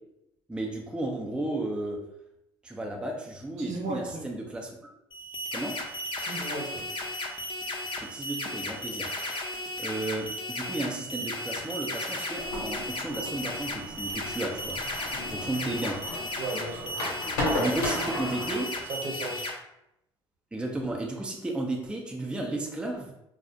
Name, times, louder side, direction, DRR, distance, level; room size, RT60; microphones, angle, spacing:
voice 1, 0.5-2.0 2.6-4.7 5.5-5.8 8.0-9.4 9.8-14.8 15.3-16.0 17.6-18.7 20.5-23.1, right 2 dB, 10° right, 0 dB, 0.4 m, -33 dB
voice 2, 3.6-4.2 6.2-6.9 16.4-16.9 17.5-17.8 18.9-19.5, right 2 dB, 65° right, -1 dB, 0.8 m, -35 dB
sound 1, 5.1-19.5, left 1 dB, 40° left, 0.5 m, -35 dB
sound 2, 12.4-18.7, left 1 dB, 85° left, 0.8 m, -35 dB
2.3 x 2.0 x 2.7 m, 0.84 s
hypercardioid pair, 65°, 12 cm